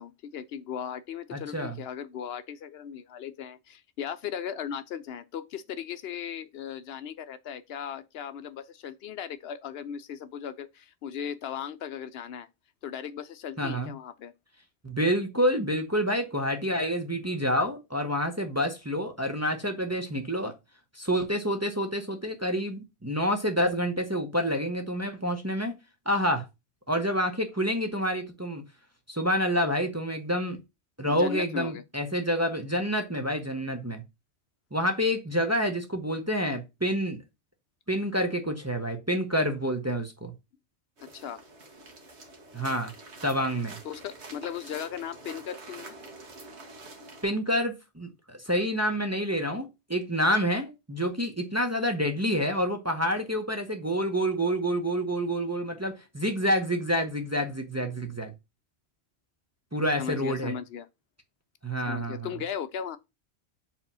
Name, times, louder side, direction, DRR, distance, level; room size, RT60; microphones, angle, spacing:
voice 1, 0.0-12.5 12.8-14.3 31.0-31.8 41.0-41.4 43.8-46.0 60.0-60.9 61.9-63.0, left 8 dB, 70° left, 0.8 m, -37 dB
voice 2, 1.3-1.8 13.6-13.9 14.8-20.5 20.9-25.7 26.1-26.5 26.9-28.6 29.1-30.6 31.0-34.0 34.7-37.2 37.9-40.3 42.5-42.9 43.2-43.8 47.2-58.3 59.7-60.6 61.6-62.3, equal, 15° right, 0.7 m, -28 dB
sound 1, 41.0-47.2, right 2 dB, 80° right, 1.6 m, -46 dB
4.9 x 3.6 x 5.3 m
omnidirectional pair, 1.1 m